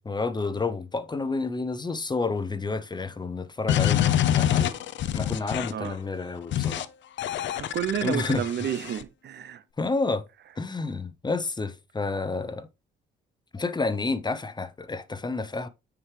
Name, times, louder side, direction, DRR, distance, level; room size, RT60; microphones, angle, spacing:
voice 1, 0.0-4.7 5.1-6.9 8.0-8.4 9.8-10.2 10.6-12.7 13.5-15.7, left 3 dB, 20° left, 0.8 m, -30 dB
sound 1, 3.7-5.9 6.5-6.9 7.2-9.0, left 11 dB, 70° left, 0.7 m, -26 dB
voice 2, 7.5-9.6, right 10 dB, 60° right, 0.8 m, -30 dB
9.3 x 4.8 x 3.3 m
cardioid pair, 90°, 20 cm